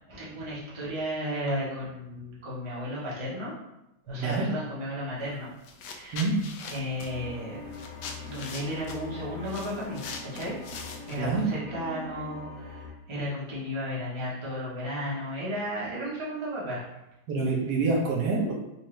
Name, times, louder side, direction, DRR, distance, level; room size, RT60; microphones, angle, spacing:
voice 1, 0.1-3.5 4.1-5.5 5.9-6.3 6.7-7.7 8.2-10.6 11.0-16.8, equal, 20° right, -7 dB, 0.9 m, -34 dB
voice 2, 4.1-4.5 6.1-6.3 11.1-11.4 17.3-18.5, right 3 dB, 65° right, -2 dB, 1.4 m, -27 dB
sound 1, 5.2-5.4 5.6-11.5, left 5 dB, 80° left, 1.2 m, -42 dB
sound 2, 7.1-12.9, left 3 dB, 45° left, 1.6 m, -42 dB
4.5 x 2.6 x 3.1 m, 0.89 s
omnidirectional pair, 1.8 m